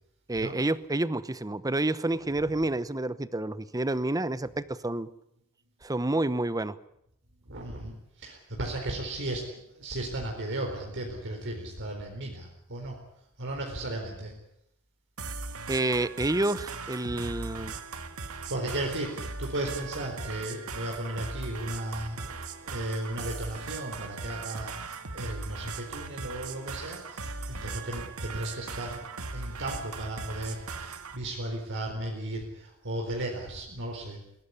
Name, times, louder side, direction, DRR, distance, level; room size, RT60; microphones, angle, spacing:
voice 1, 0.3-5.1 5.8-6.8 15.7-17.8 22.2-22.3, right 2 dB, 15° right, 16 dB, 0.9 m, -29 dB
voice 2, 7.5-13.0 13.4-14.3 18.5-24.7 25.1-29.0 29.3-34.2, right 1 dB, 60° right, 1 dB, 4.2 m, -35 dB
sound 1, 15.2-31.2, right 4 dB, 75° right, 2.0 m, -39 dB
21.5 x 17.5 x 9.9 m, 0.77 s
head